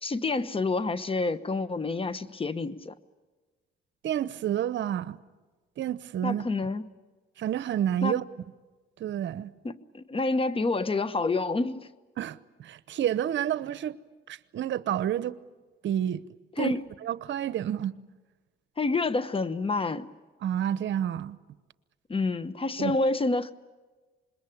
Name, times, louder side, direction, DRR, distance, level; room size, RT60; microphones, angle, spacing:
voice 1, 0.0-2.9 6.2-6.9 8.0-8.2 9.6-11.9 16.6-16.8 18.8-20.1 22.1-23.5, left 3 dB, 30° left, 1.1 m, -28 dB
voice 2, 4.0-5.2 5.8-6.4 7.4-8.2 9.0-9.5 12.2-14.0 14.3-15.4 15.8-16.2 16.6-16.7 17.0-17.9 20.4-21.4 22.8-23.0, right 10 dB, 70° right, 0.9 m, -29 dB
26.5 x 21.5 x 8.6 m
cardioid pair, 90°, 20 cm